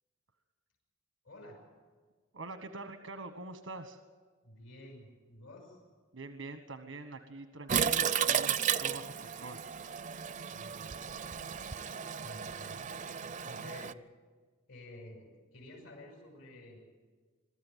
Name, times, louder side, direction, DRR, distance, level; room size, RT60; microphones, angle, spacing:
voice 1, 1.2-1.6 4.4-5.8 10.5-11.0 12.2-12.9 13.4-13.9 14.7-16.8, left 1 dB, 85° left, 1 dB, 6.1 m, -51 dB
voice 2, 2.3-4.0 6.1-9.6, right 3 dB, 85° right, 8 dB, 1.3 m, -45 dB
Toilet flush, 7.7-13.9, right 8 dB, 40° right, 0.5 m, -34 dB
23.0 x 13.5 x 9.3 m, 1.5 s
head